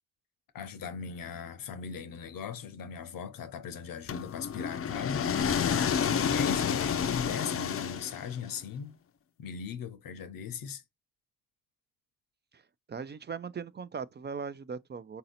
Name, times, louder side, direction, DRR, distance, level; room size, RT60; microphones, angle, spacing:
voice 1, 0.5-5.3 6.3-9.0 9.4-10.8, left 7 dB, 85° left, 0.8 m, -39 dB
sound 1, 4.1-8.5, left 7 dB, 45° left, 0.5 m, -29 dB
voice 2, 12.9-15.2, right 6 dB, 35° right, 0.4 m, -39 dB
4.1 x 2.8 x 3.9 m
cardioid pair, 80°, 33 cm